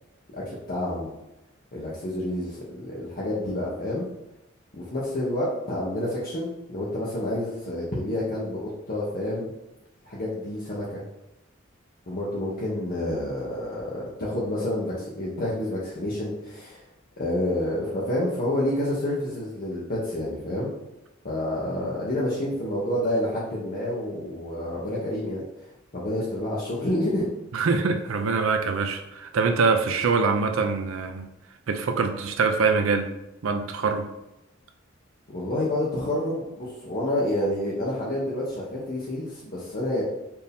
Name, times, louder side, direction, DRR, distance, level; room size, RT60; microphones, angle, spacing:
voice 1, 0.3-1.1 1.7-4.1 4.7-9.5 10.0-11.0 12.1-16.8 17.2-20.7 21.2-25.7 25.9-27.3 35.3-40.0, left 1 dB, 45° left, -6 dB, 0.8 m, -29 dB
voice 2, 27.5-31.3 31.7-33.1 33.4-34.1, right 4 dB, 70° right, 5 dB, 0.5 m, -24 dB
4.4 x 2.7 x 3.4 m, 0.92 s
head